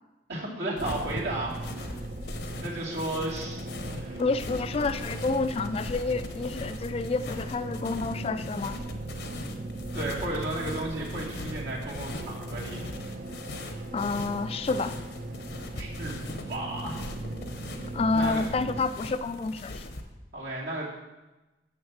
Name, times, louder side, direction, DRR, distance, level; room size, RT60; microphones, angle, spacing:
voice 1, 0.3-1.9 2.6-3.6 3.9-4.3 9.9-12.9 15.8-16.2 16.5-17.1 17.6-17.8 18.1-18.4 20.3-20.9, right 1 dB, 75° right, -4 dB, 2.5 m, -34 dB
sound 1, 0.8-20.0, left 2 dB, 70° left, 0.8 m, -41 dB
sound 2, 0.8-18.8, right 2 dB, 50° right, 0.7 m, -39 dB
voice 2, 4.2-8.8 13.9-15.0 17.9-19.9, left 3 dB, 35° left, 12 dB, 0.3 m, -29 dB
7.3 x 6.3 x 5.9 m, 1.1 s
head